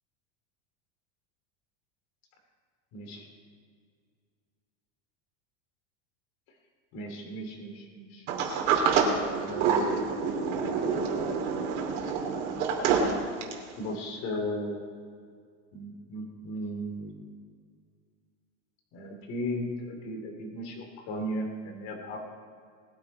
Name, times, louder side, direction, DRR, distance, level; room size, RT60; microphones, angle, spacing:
voice 1, 2.9-3.3 6.9-9.0 9.4-10.5 13.8-15.1 15.7-17.3 18.9-22.2, equal, 45° left, 3 dB, 3.0 m, -36 dB
Sliding door, 8.3-13.7, right 5 dB, 70° right, 2.7 m, -27 dB
20.5 x 10.0 x 4.4 m, 2.1 s
supercardioid pair, 145°, 37 cm